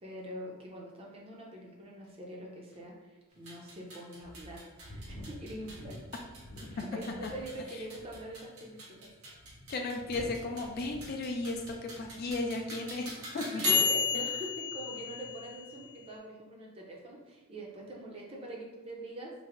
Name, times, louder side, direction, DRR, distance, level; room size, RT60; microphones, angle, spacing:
voice 1, 0.0-6.0 6.7-9.1 13.5-19.3, right 1 dB, 25° right, -2 dB, 0.6 m, -44 dB
sound 1, 2.0-2.1 2.7-2.8 3.5-3.6 4.2-7.5 7.8-8.3 9.0-12.5 12.8-13.1, left 1 dB, 65° left, 0.8 m, -49 dB
sound 2, 3.3-16.1, left 5 dB, 70° right, 1.0 m, -36 dB
voice 2, 9.7-13.8, left 2 dB, 45° left, 3 dB, 0.3 m, -35 dB
3.3 x 2.0 x 3.6 m, 1.1 s
head